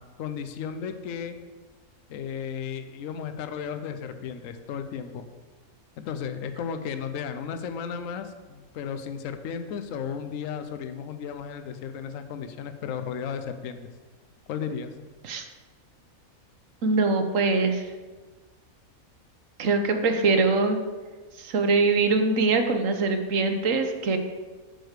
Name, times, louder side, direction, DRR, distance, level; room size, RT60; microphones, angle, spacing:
voice 1, 0.0-1.4 2.1-5.2 6.0-13.9 14.5-14.9, left 7 dB, 70° left, 9 dB, 1.0 m, -34 dB
voice 2, 16.8-17.8 19.6-20.8 21.4-24.2, right 3 dB, 65° right, 6 dB, 1.2 m, -23 dB
8.0 x 4.8 x 6.5 m, 1.3 s
omnidirectional pair, 1.5 m